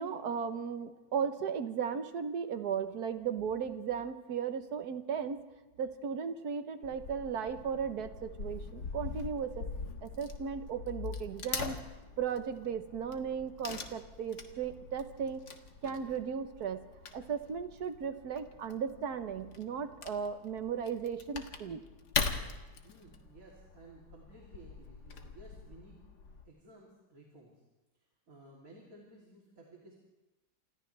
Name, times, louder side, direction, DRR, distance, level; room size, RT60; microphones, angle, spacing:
voice 1, 0.0-5.4 5.8-9.6 10.0-11.8 12.2-15.4 15.8-16.8 17.1-21.8, right 7 dB, 75° right, 9 dB, 1.7 m, -36 dB
Wood / Tearing, 6.8-26.4, left 5 dB, 80° left, 2.1 m, -42 dB
voice 2, 22.8-26.0 26.5-27.6 28.3-29.9, right 2 dB, 60° right, -3 dB, 3.6 m, -56 dB
28.5 x 27.5 x 3.4 m, 1.1 s
omnidirectional pair, 1.7 m